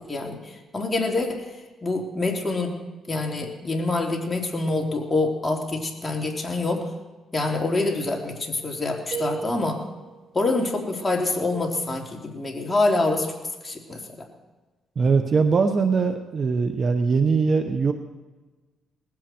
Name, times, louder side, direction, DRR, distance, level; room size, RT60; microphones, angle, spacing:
voice 1, 0.1-1.5 1.8-2.8 3.1-6.9 7.3-9.8 10.3-13.3 13.6-14.0, left 2 dB, 20° left, 0 dB, 3.4 m, -26 dB
sound 1, 9.1-10.2, right 6 dB, 70° right, 4.2 m, -33 dB
voice 2, 15.0-17.9, right 4 dB, 45° right, 7 dB, 1.1 m, -21 dB
19.5 x 15.5 x 4.6 m, 1.2 s
cardioid pair, 90°, 0 cm